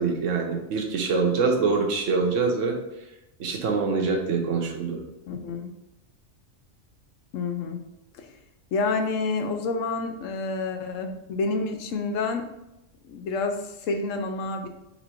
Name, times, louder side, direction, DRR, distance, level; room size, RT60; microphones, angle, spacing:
voice 1, 0.0-2.8 3.4-5.0, right 4 dB, 80° right, 2 dB, 1.1 m, -24 dB
voice 2, 5.3-5.7 7.3-7.8 8.2-8.3 8.7-12.5 13.1-14.7, left 3 dB, 85° left, 6 dB, 1.0 m, -28 dB
4.3 x 2.6 x 4.2 m, 0.88 s
omnidirectional pair, 1.3 m